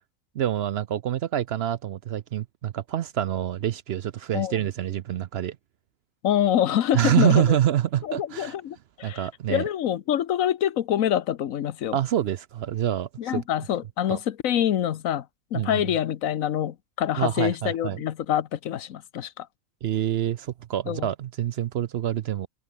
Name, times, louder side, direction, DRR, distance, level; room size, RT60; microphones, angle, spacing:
voice 1, 0.3-5.6 6.9-8.5 9.0-9.6 11.9-13.4 14.1-14.2 15.5-15.8 17.1-18.0 19.8-22.5, right 11 dB, 60° right, 0.7 m, -26 dB
voice 2, 6.2-7.6 8.0-12.0 13.2-15.3 15.5-19.5 20.9-21.1, left 10 dB, 85° left, 1.3 m, -26 dB
omnidirectional pair, 1.4 m